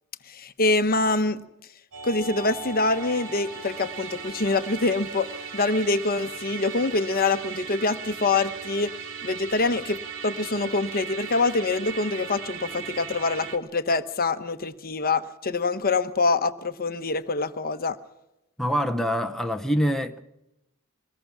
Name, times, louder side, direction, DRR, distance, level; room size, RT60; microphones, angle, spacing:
voice 1, 0.3-1.4 2.0-8.9 9.2-18.0, left 3 dB, 40° left, 1.0 m, -25 dB
Musical instrument, 1.9-13.6, right 6 dB, 60° right, 2.3 m, -37 dB
voice 2, 18.6-20.2, equal, ahead, 0.8 m, -25 dB
25.0 x 20.0 x 6.1 m
head